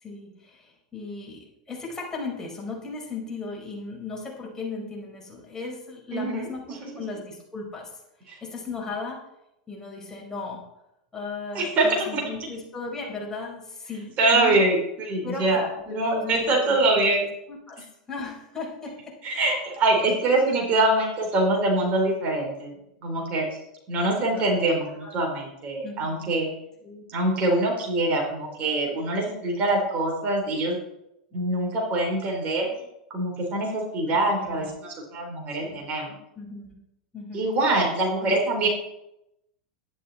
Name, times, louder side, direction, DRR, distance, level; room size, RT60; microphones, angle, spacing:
voice 1, 0.0-7.9 8.2-9.2 9.7-10.6 11.1-14.6 15.2-15.6 16.1-17.2 17.5-17.8 18.1-19.2 20.3-20.4 24.2-24.4 25.0-25.1 25.8-26.3 26.8-27.0 34.1-34.7 35.6-35.8 36.3-36.8 37.1-37.5 38.2-38.4, left 4 dB, 15° left, -2 dB, 5.1 m, -36 dB
voice 2, 6.1-6.5 8.3-8.4 11.5-12.2 14.2-17.2 19.2-22.7 23.0-23.5 23.9-26.5 27.1-30.8 31.3-36.1 37.3-38.7, right 2 dB, 40° right, 1 dB, 4.4 m, -24 dB
12.0 x 11.0 x 4.4 m, 0.83 s
hypercardioid pair, 90°, 4 cm